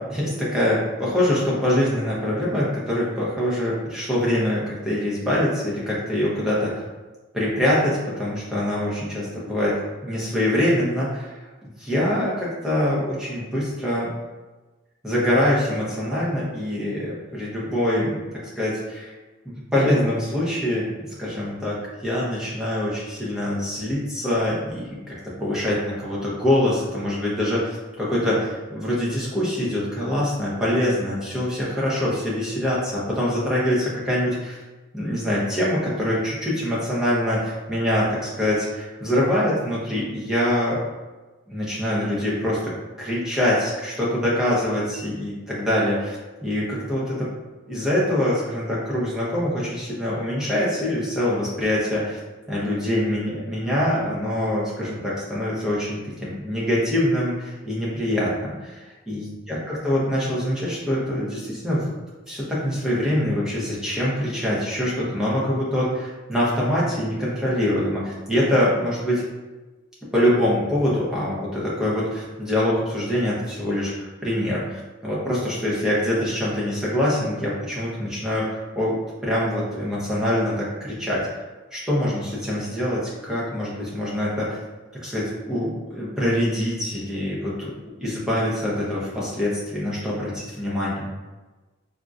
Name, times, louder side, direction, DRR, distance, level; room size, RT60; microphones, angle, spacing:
voice 1, 0.0-6.7 7.3-9.8 10.0-11.5 11.8-14.1 15.0-19.1 19.4-20.9 21.2-34.6 34.9-40.8 41.5-47.3 47.7-52.2 52.5-61.8 62.3-69.2 70.1-79.0 79.2-81.3 81.7-84.6 85.0-87.7 88.0-91.1, left 1 dB, 5° right, -8 dB, 0.7 m, -24 dB
3.5 x 2.6 x 2.4 m, 1.2 s
head